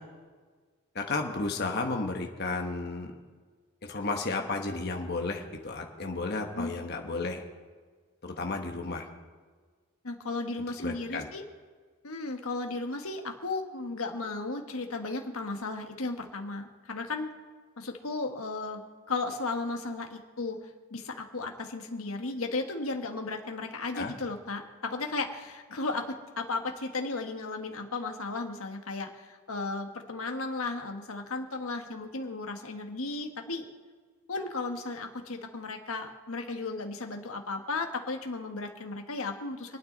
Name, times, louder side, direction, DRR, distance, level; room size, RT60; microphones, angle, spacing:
voice 1, 0.9-3.1 3.8-7.4 8.2-9.1 10.8-11.3 23.9-24.1, left 3 dB, 45° left, 3 dB, 1.3 m, -33 dB
voice 2, 10.0-11.4 12.0-17.3 17.8-18.8 19.1-33.7 34.3-39.8, left 3 dB, 80° left, 4 dB, 1.6 m, -35 dB
27.5 x 9.4 x 4.0 m, 1.5 s
head